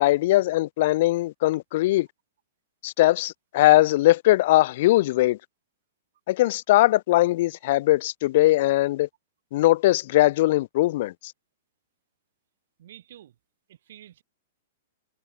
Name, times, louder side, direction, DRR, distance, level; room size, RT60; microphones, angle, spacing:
voice 1, 0.0-2.1 2.8-5.4 6.3-9.1 9.5-11.3, left 16 dB, 55° left, 0.5 m, -20 dB
voice 2, 12.8-13.4 13.7-14.2, right 11 dB, 60° right, 3.7 m, -48 dB
figure-of-eight pair, 105°, 0 cm